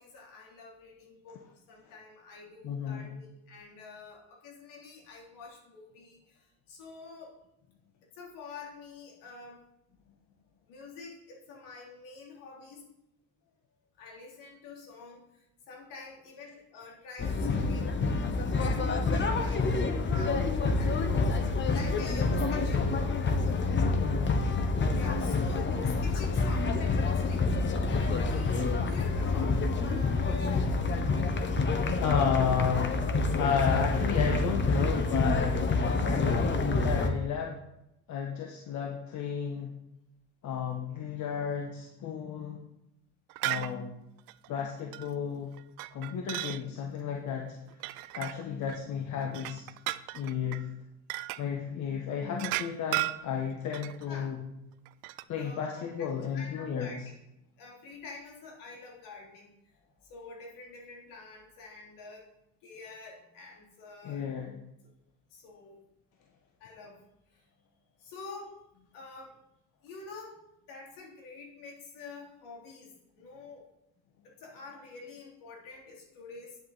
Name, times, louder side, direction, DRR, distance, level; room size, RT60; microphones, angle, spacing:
voice 1, 0.0-7.3 8.1-9.6 10.7-12.8 14.0-18.1 18.6-21.2 21.6-23.2 24.9-27.5 27.9-30.7 36.0-36.2 54.1-54.3 55.4-57.0 57.6-59.5 60.0-62.3 62.6-64.3 65.3-65.8 66.6-67.0 67.3-67.5 68.0-68.6 68.9-69.4 69.8-73.6 74.2-76.6, left 4 dB, 80° left, -1 dB, 3.4 m, -48 dB
voice 2, 2.6-3.1 24.0-24.4 32.0-35.6 36.0-37.6 38.1-39.7 40.4-42.6 43.4-43.9 44.5-45.5 45.9-47.6 48.1-49.6 50.1-50.7 51.4-54.4 55.3-56.9 64.0-64.6, left 7 dB, 60° left, 1 dB, 1.4 m, -33 dB
sound 1, 17.2-37.1, left 3 dB, 35° left, 1.2 m, -27 dB
sound 2, 43.3-43.7 44.3-44.5 44.9-45.1 45.5-46.6 47.7-48.8 49.2-50.6 51.1-51.4 52.3-54.1 54.8-55.2, right 18 dB, 90° right, 0.5 m, -35 dB
9.6 x 8.2 x 4.2 m, 0.86 s
cardioid pair, 110°, 33 cm